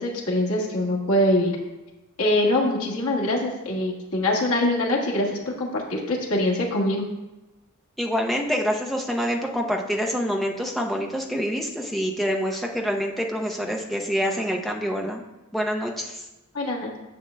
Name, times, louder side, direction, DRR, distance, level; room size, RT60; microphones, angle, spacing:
voice 1, 0.0-1.5 2.2-7.0 16.5-17.0, left 1 dB, 85° left, -2 dB, 1.6 m, -23 dB
voice 2, 8.0-15.2 15.5-16.2, equal, ahead, 0 dB, 0.6 m, -26 dB
10.5 x 7.2 x 2.2 m, 1.0 s
head